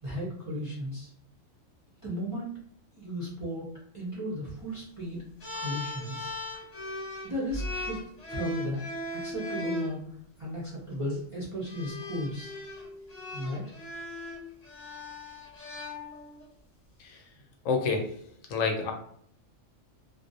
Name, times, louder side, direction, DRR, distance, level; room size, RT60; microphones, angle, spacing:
voice 1, 0.0-1.1 2.0-2.5 2.9-3.7 3.9-5.2 5.5-6.3 7.2-8.0 8.3-8.9 9.1-10.1 10.4-12.5 13.3-13.6, equal, 50° right, -5 dB, 0.3 m, -35 dB
sound 1, 5.4-9.9 10.9-11.2 11.7-16.5, left 1 dB, 35° left, 0.9 m, -38 dB
voice 2, 17.7-18.1 18.5-18.9, left 4 dB, 75° left, 2 dB, 0.9 m, -27 dB
2.4 x 2.0 x 2.6 m, 0.65 s
omnidirectional pair, 1.4 m